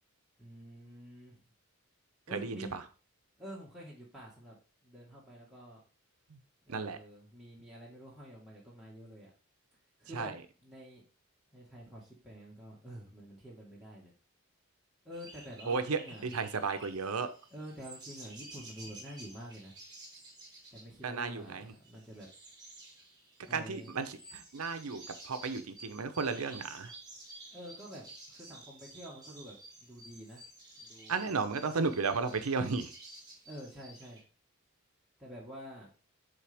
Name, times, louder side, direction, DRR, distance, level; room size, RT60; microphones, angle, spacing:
voice 1, 0.4-1.4 2.3-2.7 3.4-4.6 4.8-5.8 6.6-9.3 10.0-10.3 10.6-11.0 11.5-14.1 15.0-16.3 17.5-19.8 20.7-22.3 23.5-23.9 27.5-30.4 30.8-31.3 33.4-34.2 35.2-35.9, equal, ahead, -6 dB, 1.6 m, -48 dB
voice 2, 2.3-2.8 6.3-6.4 6.7-7.0 10.1-10.3 15.7-17.3 21.0-21.7 23.5-26.9 31.1-32.9, right 4 dB, 85° right, 9 dB, 0.7 m, -34 dB
sound 1, 15.1-34.2, right 2 dB, 20° right, 1.6 m, -52 dB
7.6 x 3.9 x 3.4 m, 0.36 s
head